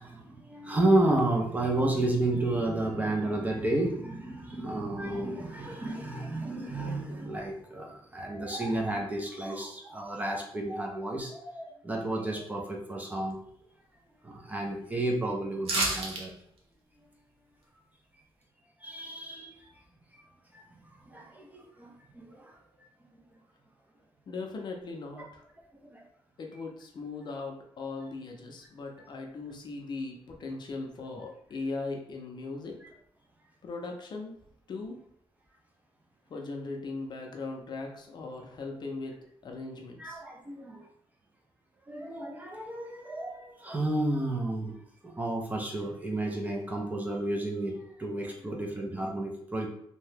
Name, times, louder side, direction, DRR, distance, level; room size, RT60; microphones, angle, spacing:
voice 1, 0.0-13.4 14.2-16.3 18.8-19.8 20.1-20.3 20.5-22.9 23.1-23.2 25.1-25.3 25.8-26.0 40.0-40.9 41.9-44.8 45.0-49.7, right 2 dB, 15° right, 0 dB, 0.4 m, -32 dB
sound 1, 15.6-16.2 16.6-16.7, right 2 dB, 85° right, 0.7 m, -28 dB
voice 2, 24.3-25.4 26.4-32.8 33.6-34.4 34.7-35.0 36.3-39.2 39.4-40.2, left 3 dB, 50° left, 1 dB, 0.5 m, -39 dB
2.8 x 2.2 x 3.2 m, 0.69 s
wide cardioid pair, 160°, 10 cm